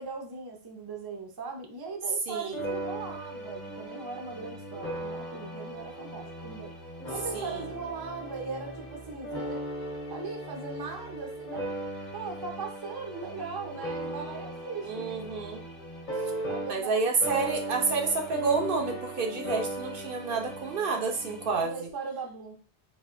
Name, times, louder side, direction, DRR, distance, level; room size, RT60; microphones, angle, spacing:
voice 1, 0.0-6.7 7.1-9.6 10.1-11.8 12.1-15.2 16.4-17.5 21.6-22.5, right 4 dB, 30° right, 2 dB, 0.5 m, -39 dB
sound 1, 2.5-17.0 17.2-21.7, right 1 dB, 50° left, 1.0 m, -37 dB
voice 2, 14.8-15.6 16.7-21.8, right 4 dB, 65° right, 3 dB, 0.8 m, -29 dB
4.0 x 2.7 x 2.4 m, 0.38 s
omnidirectional pair, 1.0 m